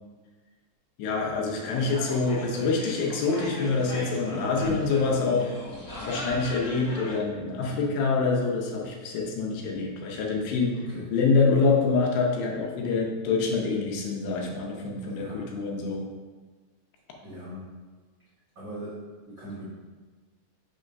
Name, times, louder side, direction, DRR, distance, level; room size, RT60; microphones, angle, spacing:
voice 1, 1.0-5.5 6.1-10.8 11.1-16.0, left 4 dB, 80° left, 0 dB, 2.8 m, -26 dB
sound 1, 1.5-7.2, left 1 dB, 55° left, 1.0 m, -37 dB
voice 2, 17.2-17.6 18.5-19.0 19.3-19.7, equal, 80° right, -10 dB, 1.0 m, -40 dB
6.4 x 3.6 x 5.2 m, 1.4 s
omnidirectional pair, 5.1 m